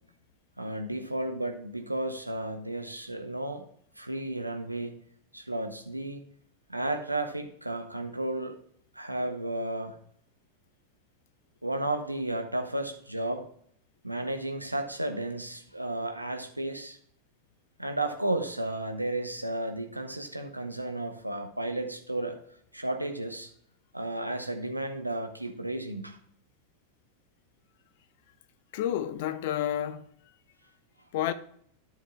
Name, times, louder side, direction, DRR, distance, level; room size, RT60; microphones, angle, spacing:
voice 1, 0.6-3.7 4.0-5.0 5.3-6.2 6.7-8.6 8.9-9.9 11.6-13.5 14.0-17.0 17.8-22.4 22.7-23.5 23.9-26.2, right 1 dB, 85° right, 1.0 m, -33 dB
voice 2, 28.7-30.1 31.1-31.3, left 11 dB, 50° left, 0.6 m, -30 dB
12.0 x 5.4 x 3.6 m
figure-of-eight pair, 90°, 0 cm